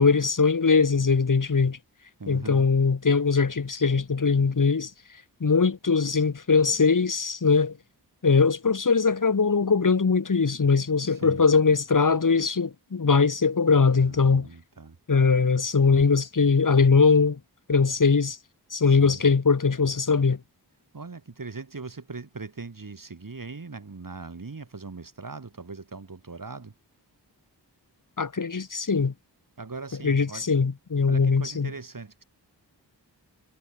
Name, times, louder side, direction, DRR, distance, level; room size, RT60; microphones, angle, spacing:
voice 1, 0.0-1.8 2.3-4.9 5.4-7.8 8.2-14.5 15.1-17.4 17.7-18.4 18.7-20.4 28.2-29.1 30.0-31.7, left 5 dB, 50° left, 1.7 m, -21 dB
voice 2, 2.2-2.7 11.0-11.4 14.0-15.0 18.9-19.2 20.9-26.7 29.6-30.5 31.1-32.2, right 4 dB, 55° right, 3.2 m, -40 dB
wide cardioid pair, 60°, 41 cm